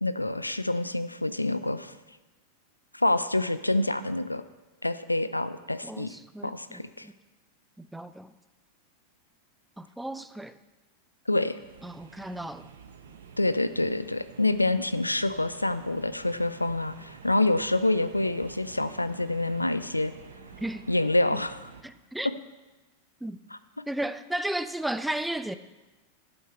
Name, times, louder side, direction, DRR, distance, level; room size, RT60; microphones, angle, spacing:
voice 1, 0.0-1.9 2.9-4.4 4.8-6.1 6.4-7.1 11.3-11.6 13.4-20.1 20.9-21.6, left 2 dB, 85° left, 14 dB, 0.4 m, -27 dB
voice 2, 5.8-7.2 7.8-8.3 9.8-10.6 11.8-12.7 20.6-20.9 21.3-21.4 21.8-22.3 23.2-23.4 23.9-25.6, right 1 dB, 5° right, 12 dB, 0.4 m, -34 dB
sound 1, 11.6-21.8, right 6 dB, 65° right, 0.9 m, -49 dB
11.5 x 7.9 x 4.4 m, 1.2 s
figure-of-eight pair, 90°, 0 cm